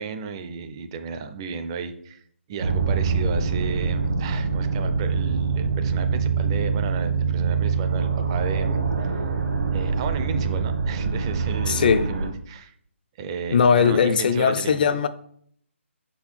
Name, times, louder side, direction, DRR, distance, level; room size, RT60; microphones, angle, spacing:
voice 1, 0.0-2.2 2.5-9.2 9.7-12.7 13.2-14.8, right 5 dB, 20° right, 0.4 m, -34 dB
sound 1, 2.6-12.3, right 5 dB, 75° right, 1.4 m, -24 dB
voice 2, 11.7-12.1 13.5-15.1, left 6 dB, 40° left, 0.4 m, -19 dB
5.2 x 4.4 x 4.3 m
hypercardioid pair, 160°, 7 cm